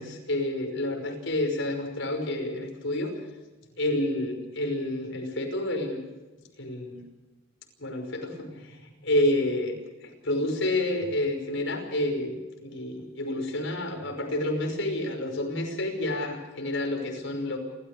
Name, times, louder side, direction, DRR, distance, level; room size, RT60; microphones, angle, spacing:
voice 1, 0.0-3.1 3.8-6.0 6.6-7.0 7.8-8.8 9.0-9.7 10.0-12.4 12.6-17.6, left 1 dB, 65° left, 3 dB, 5.6 m, -29 dB
29.0 x 14.5 x 6.8 m, 1.2 s
head